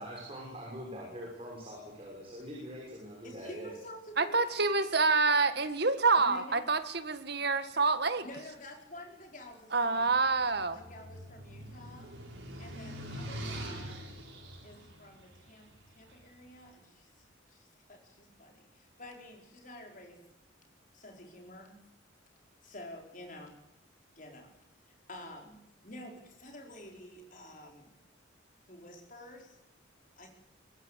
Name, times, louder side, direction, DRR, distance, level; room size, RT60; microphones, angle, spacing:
voice 1, 0.0-3.7, equal, 30° right, -2 dB, 6.4 m, -43 dB
voice 2, 3.2-4.9 6.1-6.7 8.2-10.3 10.6-12.1 12.6-14.0 14.6-20.2 20.9-21.8 22.6-23.5 24.2-24.5 24.9-28.0 28.6-29.6 30.2-30.3, left 1 dB, 40° left, 2 dB, 4.8 m, -49 dB
voice 3, 4.2-8.3 9.7-10.8, right 4 dB, 55° right, 10 dB, 1.7 m, -27 dB
sound 1, 10.0-16.3, right 1 dB, 85° right, 7.2 m, -44 dB
24.0 x 20.0 x 8.3 m, 0.85 s
head